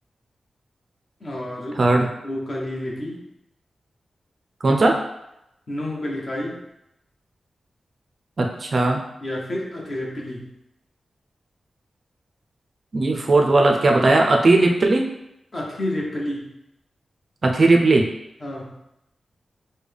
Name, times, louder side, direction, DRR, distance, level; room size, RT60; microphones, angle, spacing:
voice 1, 1.2-2.0 2.2-3.2 5.7-6.6 9.2-10.5 15.5-16.5 18.4-18.7, left 1 dB, 35° left, -3 dB, 1.0 m, -30 dB
voice 2, 1.8-2.1 4.6-5.0 8.4-9.0 12.9-15.1 17.4-18.1, right 2 dB, 40° right, 2 dB, 0.4 m, -17 dB
6.7 x 2.2 x 3.3 m, 0.84 s
wide cardioid pair, 155°, 0 cm